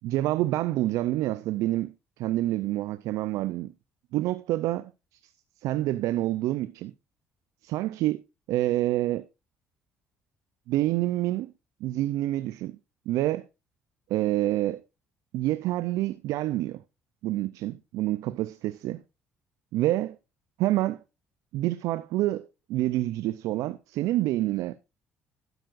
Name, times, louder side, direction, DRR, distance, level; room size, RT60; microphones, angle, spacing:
voice 1, 0.0-3.7 4.1-4.9 5.6-6.9 7.6-8.2 8.5-9.3 10.7-11.5 11.8-12.8 13.1-13.4 14.1-14.8 15.3-16.8 17.2-19.0 19.7-20.2 20.6-21.0 21.5-24.8, right 15 dB, 75° right, 0.5 m, -27 dB
12.0 x 9.1 x 2.5 m
hypercardioid pair, 60°, 6 cm